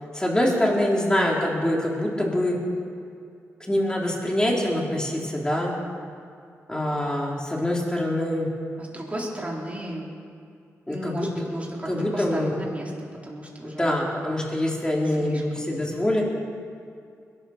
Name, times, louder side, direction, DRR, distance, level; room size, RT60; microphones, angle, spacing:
voice 1, 0.1-2.6 3.6-5.7 6.7-8.5 10.9-11.3 11.9-12.6 13.8-16.2, left 1 dB, 15° left, -2 dB, 3.8 m, -24 dB
voice 2, 8.8-10.1 10.9-12.9 13.2-13.9 15.1-15.7, right 1 dB, 25° right, -3 dB, 3.8 m, -34 dB
21.0 x 12.5 x 4.5 m, 2.4 s
cardioid pair, 60°, 6 cm